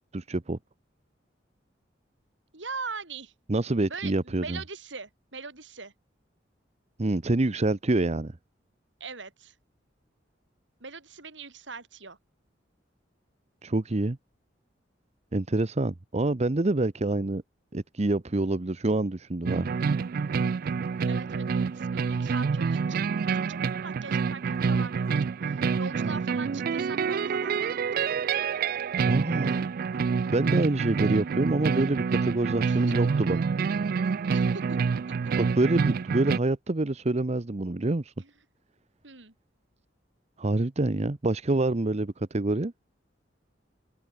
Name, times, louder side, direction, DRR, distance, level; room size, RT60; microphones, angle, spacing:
voice 1, 0.1-0.6 3.5-4.6 7.0-8.3 13.6-14.2 15.3-17.4 17.7-19.7 29.0-29.6 30.3-33.4 35.4-38.1 40.4-42.7, right 2 dB, 35° right, 0.8 m, -26 dB
voice 2, 2.5-3.3 3.8-5.9 9.0-9.5 10.8-12.2 21.1-23.0 23.3-28.0 32.6-32.9 34.3-34.8 38.2-38.3 39.0-39.3, right 4 dB, 80° right, 4.4 m, -41 dB
sound 1, 19.5-36.4, right 5 dB, 50° right, 0.4 m, -27 dB
open air
head